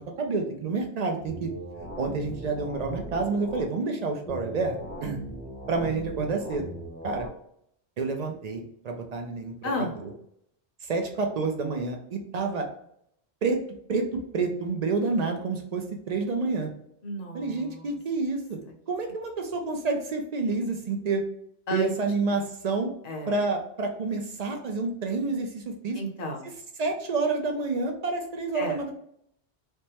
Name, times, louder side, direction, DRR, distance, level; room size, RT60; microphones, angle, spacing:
voice 1, 0.2-1.5 2.0-4.7 5.0-5.2 5.7-6.7 7.0-7.3 8.0-9.7 10.0-10.1 10.8-12.7 13.4-13.6 13.9-14.1 14.3-16.7 17.3-18.6 18.9-21.2 21.7-22.9 23.3-26.0 26.8-28.9, right 3 dB, 55° right, 3 dB, 0.4 m, -28 dB
sound 1, 1.3-3.7 4.3-7.3, right 1 dB, 10° left, 0.6 m, -39 dB
voice 2, 9.6-9.9 17.0-17.9 21.7-21.9 23.0-23.4 25.9-26.5 28.5-28.8, equal, 45° left, 1 dB, 0.7 m, -31 dB
3.4 x 2.0 x 2.8 m, 0.71 s
omnidirectional pair, 1.2 m